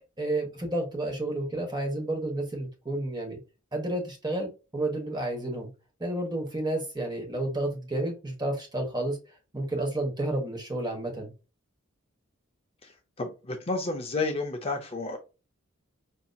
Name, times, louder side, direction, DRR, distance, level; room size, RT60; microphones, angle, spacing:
voice 1, 0.2-3.4 3.7-5.7 6.0-9.2 9.5-11.3, right 1 dB, 20° right, 1.1 m, -31 dB
voice 2, 13.2-15.2, left 3 dB, 30° left, 0.6 m, -31 dB
5.2 x 2.8 x 2.3 m
head